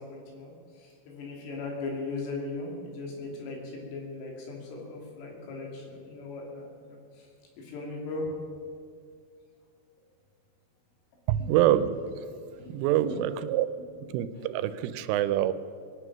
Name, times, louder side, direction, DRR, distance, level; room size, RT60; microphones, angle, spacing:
voice 1, 0.0-7.3 7.6-8.3 11.4-11.5 12.5-13.2 13.9-14.1, left 3 dB, 85° left, -1 dB, 5.2 m, -38 dB
voice 2, 11.3-12.0 12.7-13.7 14.1-15.5, right 12 dB, 90° right, 12 dB, 3.2 m, -25 dB
21.0 x 9.9 x 6.1 m, 2.2 s
omnidirectional pair, 5.5 m